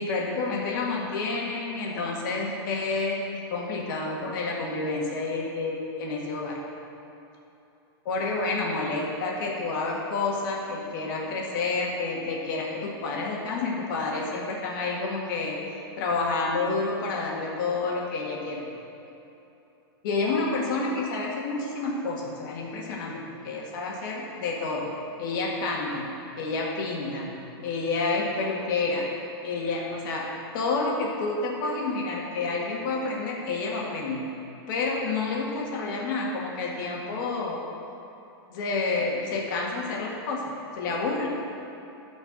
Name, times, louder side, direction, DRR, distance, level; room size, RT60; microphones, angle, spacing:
voice 1, 0.0-6.6 8.1-15.6 16.0-18.6 20.0-24.9 25.2-26.1 26.4-27.3 27.6-29.1 29.4-30.3 30.5-34.3 34.7-37.6 38.5-41.3, left 3 dB, 50° left, -2 dB, 1.7 m, -29 dB
12.0 x 4.5 x 6.4 m, 2.9 s
supercardioid pair, 150°, 13 cm